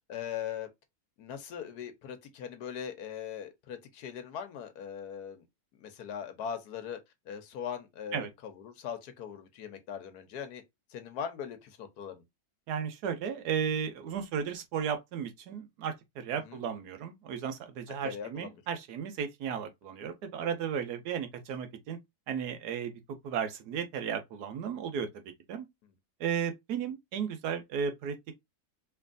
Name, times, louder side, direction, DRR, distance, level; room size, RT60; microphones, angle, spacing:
voice 1, 0.1-0.7 1.2-5.4 5.8-7.0 7.3-10.6 10.9-12.2 16.4-16.6 18.0-18.6, left 8 dB, 85° left, 1.4 m, -40 dB
voice 2, 12.7-22.0 22.3-25.1 25.5-25.7 26.2-28.2, right 7 dB, 85° right, 1.3 m, -34 dB
4.4 x 3.2 x 2.5 m
omnidirectional pair, 1.7 m